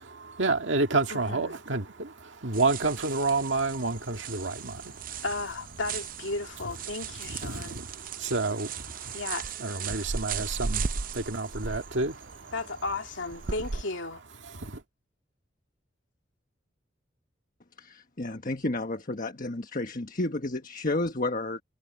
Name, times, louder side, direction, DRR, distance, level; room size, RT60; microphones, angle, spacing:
voice 1, 0.0-5.2 7.3-9.2 9.6-12.5 14.5-14.8, right 3 dB, 70° right, 2.0 m, -30 dB
voice 2, 1.1-1.6 5.2-7.8 9.1-9.5 12.5-14.2, left 3 dB, 75° left, 2.4 m, -34 dB
sound 1, 2.5-13.8, right 5 dB, 45° right, 0.6 m, -37 dB
voice 3, 17.8-21.6, left 2 dB, 45° left, 1.4 m, -31 dB
head